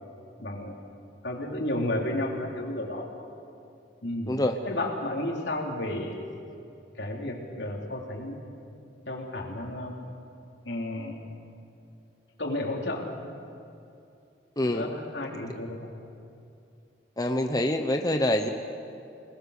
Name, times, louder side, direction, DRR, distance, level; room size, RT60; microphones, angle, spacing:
voice 1, 0.4-0.8 1.2-3.1 4.0-4.3 4.6-6.2 7.0-8.4 9.1-9.9 10.6-11.2 12.4-13.1 14.6-15.9, left 1 dB, 75° left, 0 dB, 3.6 m, -32 dB
voice 2, 4.3-4.6 14.6-14.9 17.2-18.5, left 1 dB, 20° left, 5 dB, 0.9 m, -25 dB
28.0 x 20.0 x 6.6 m, 2.6 s
head